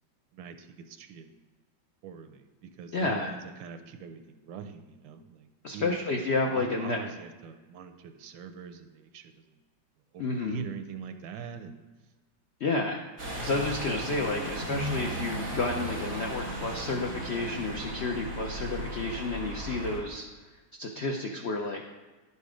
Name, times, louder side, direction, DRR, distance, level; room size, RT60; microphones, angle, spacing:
voice 1, 0.3-1.3 2.0-6.1 6.5-9.6 10.1-11.8, right 7 dB, 90° right, 8 dB, 1.4 m, -43 dB
voice 2, 2.9-3.3 5.6-7.0 10.2-10.6 12.6-13.0 13.4-20.2 20.7-21.8, left 3 dB, 90° left, 2 dB, 0.5 m, -31 dB
sound 1, 13.2-20.0, right 1 dB, 40° right, 1.7 m, -36 dB
11.0 x 4.2 x 4.9 m, 1.3 s
omnidirectional pair, 2.0 m